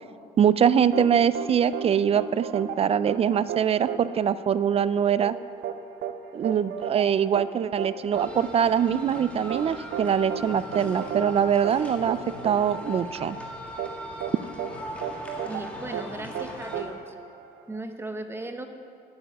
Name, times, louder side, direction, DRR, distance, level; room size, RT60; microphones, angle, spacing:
voice 1, 0.4-5.4 6.3-12.2 12.4-13.4, right 8 dB, 35° right, 15 dB, 0.3 m, -23 dB
sound 1, 0.9-17.8, right 8 dB, 70° right, 0.8 m, -35 dB
sound 2, 8.1-16.8, left 1 dB, 5° left, 1.9 m, -39 dB
voice 2, 15.4-17.1 17.7-18.7, right 2 dB, 15° right, 6 dB, 0.9 m, -37 dB
11.0 x 9.4 x 6.1 m, 2.6 s
cardioid pair, 110°, 17 cm